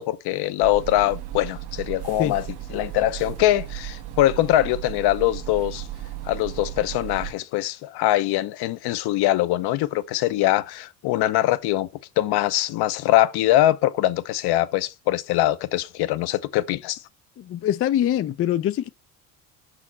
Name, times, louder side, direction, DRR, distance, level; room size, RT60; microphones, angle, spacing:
voice 1, 0.0-2.4 2.7-5.9 6.2-11.9 12.2-17.0, left 14 dB, 60° left, 0.8 m, -22 dB
sound 1, 0.6-7.3, right 13 dB, 60° right, 1.3 m, -35 dB
voice 2, 17.4-18.9, left 11 dB, 35° left, 0.4 m, -23 dB
5.9 x 4.9 x 4.3 m
hypercardioid pair, 70°, 45 cm